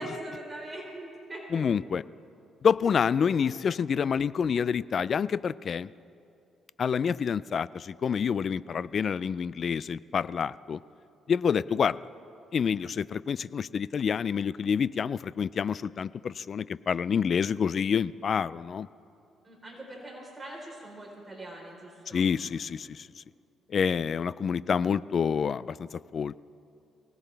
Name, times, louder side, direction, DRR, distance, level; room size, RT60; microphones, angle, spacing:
voice 1, 0.0-1.4 19.4-22.2, right 1 dB, 20° right, -2 dB, 4.0 m, -41 dB
voice 2, 1.5-2.0 2.6-5.9 6.8-10.8 11.3-12.0 12.5-18.9 22.1-23.1 23.7-26.3, left 7 dB, 50° left, 19 dB, 0.3 m, -28 dB
23.5 x 18.0 x 3.4 m, 2.7 s
cardioid pair, 95°, 0 cm